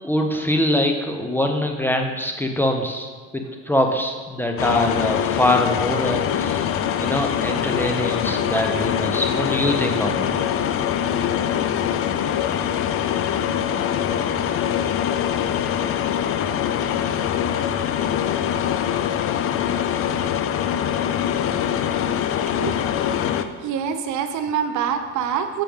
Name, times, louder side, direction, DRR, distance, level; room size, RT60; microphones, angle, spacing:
voice 1, 0.0-6.7 7.0-10.3, left 1 dB, 5° left, 3 dB, 0.7 m, -23 dB
sound 1, 4.6-23.4, left 9 dB, 40° left, 0.5 m, -23 dB
voice 2, 22.4-22.9 23.2-25.6, right 7 dB, 55° right, 8 dB, 0.7 m, -26 dB
7.6 x 6.6 x 3.5 m, 1.4 s
supercardioid pair, 100°, 35 cm